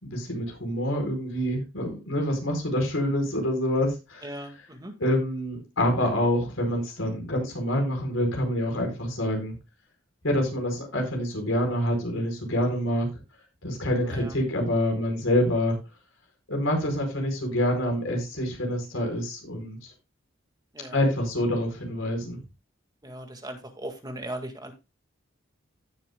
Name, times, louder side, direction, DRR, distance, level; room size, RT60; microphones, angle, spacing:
voice 1, 0.0-4.3 5.0-9.5 10.2-13.1 13.6-15.8 16.5-19.8 20.9-22.4, equal, 85° left, 2 dB, 4.4 m, -26 dB
voice 2, 4.2-4.9 14.0-14.4 20.7-21.0 23.0-24.7, right 1 dB, 20° right, 5 dB, 1.8 m, -38 dB
16.5 x 7.4 x 2.2 m, 0.26 s
head